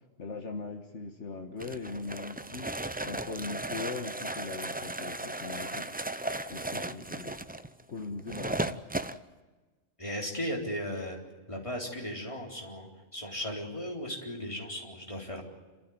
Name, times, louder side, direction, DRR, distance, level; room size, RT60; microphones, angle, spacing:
voice 1, 0.2-5.9 6.5-7.4 7.9-8.8, left 4 dB, 65° left, 4 dB, 1.8 m, -40 dB
sound 1, 1.6-9.2, right 2 dB, 15° right, 0.3 m, -36 dB
voice 2, 10.0-11.2 11.5-15.4, equal, 25° left, 0 dB, 4.0 m, -36 dB
29.0 x 14.0 x 9.6 m, 1.3 s
omnidirectional pair, 1.3 m